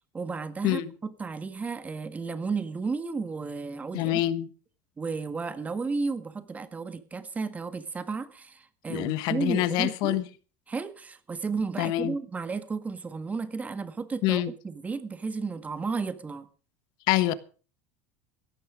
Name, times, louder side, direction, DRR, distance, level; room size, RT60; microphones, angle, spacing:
voice 1, 0.1-4.2 5.0-10.2 10.7-16.5, right 4 dB, 20° right, 1.6 m, -33 dB
voice 2, 3.9-4.5 8.9-10.2 11.8-12.2 14.2-14.5 17.1-17.3, left 15 dB, 60° left, 1.4 m, -25 dB
17.0 x 13.5 x 5.0 m
supercardioid pair, 130°, 8 cm